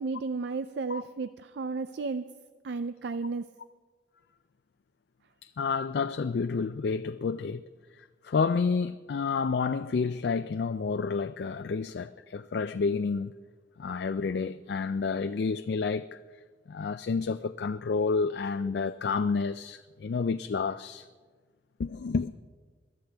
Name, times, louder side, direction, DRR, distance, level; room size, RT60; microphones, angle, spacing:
voice 1, 0.0-2.2 2.6-3.5, right 4 dB, 70° right, 0.4 m, -33 dB
voice 2, 5.4-7.6 8.2-13.3 13.8-16.2 16.7-21.1 21.8-22.4, left 5 dB, 65° left, 0.4 m, -29 dB
22.5 x 13.0 x 3.5 m
head